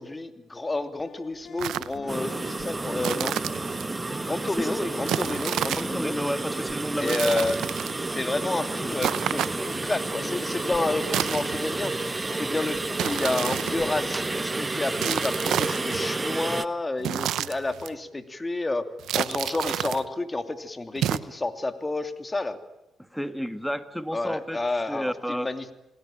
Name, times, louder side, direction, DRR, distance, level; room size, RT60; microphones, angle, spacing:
voice 1, 0.0-3.4 4.2-6.1 7.0-7.6 8.0-11.9 12.3-18.9 19.1-22.6 24.1-25.7, left 2 dB, 25° left, 8 dB, 2.8 m, -30 dB
sound 1, 1.0-14.4, left 5 dB, 55° left, 2.9 m, -44 dB
sound 2, 1.6-2.0 3.0-3.9 5.1-6.0 7.0-8.0 9.0-9.8 11.0-11.8 13.0-14.0 15.0-16.1 17.0-17.9 19.0-20.0 21.0-21.2, right 11 dB, 75° right, 0.9 m, -30 dB
sound 3, 2.1-16.7, right 3 dB, 25° right, 1.4 m, -31 dB
voice 2, 5.7-7.3 23.0-24.6 24.9-25.5, equal, ahead, 10 dB, 2.0 m, -31 dB
28.0 x 19.5 x 9.0 m, 0.95 s
supercardioid pair, 55°, 0 cm